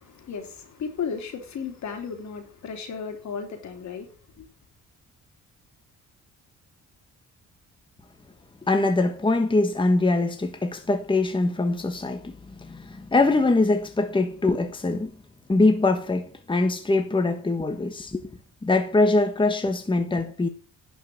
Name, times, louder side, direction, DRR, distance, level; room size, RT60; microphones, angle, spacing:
voice 1, 0.0-4.1 4.4-4.5, left 6 dB, 65° left, 3.2 m, -34 dB
voice 2, 8.7-15.1 15.5-20.5, left 2 dB, 15° left, 1.3 m, -23 dB
11.0 x 5.5 x 7.7 m
cardioid pair, 90°, 30 cm